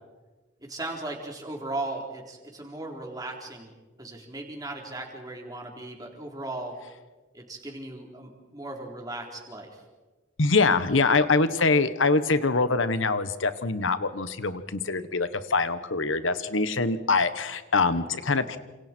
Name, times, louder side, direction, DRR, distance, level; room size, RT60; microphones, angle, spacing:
voice 1, 0.6-3.7 4.0-6.8 7.3-9.8 17.8-18.1, right 2 dB, 20° right, 0 dB, 3.9 m, -37 dB
voice 2, 10.4-18.6, left 3 dB, 85° left, 12 dB, 1.4 m, -24 dB
29.5 x 26.5 x 4.6 m, 1.2 s
head